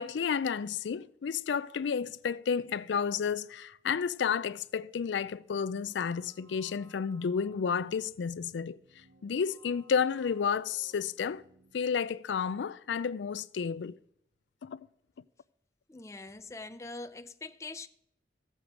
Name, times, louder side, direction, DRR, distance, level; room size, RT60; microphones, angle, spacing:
voice 1, 0.0-8.8 9.2-11.4 11.7-14.0 14.6-14.8, left 6 dB, 90° left, 0.4 m, -31 dB
sound 1, 5.5-11.8, left 1 dB, 80° right, 1.3 m, -61 dB
voice 2, 15.9-17.9, left 3 dB, 15° left, 0.4 m, -43 dB
15.0 x 7.6 x 5.0 m
head